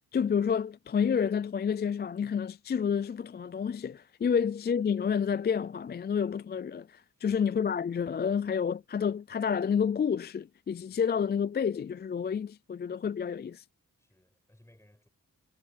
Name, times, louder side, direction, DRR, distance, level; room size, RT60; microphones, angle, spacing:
voice 1, 0.1-13.6, left 7 dB, 30° left, 0.3 m, -29 dB
voice 2, 14.0-15.1, left 1 dB, 10° left, 5.5 m, -62 dB
cardioid pair, 60°, 35 cm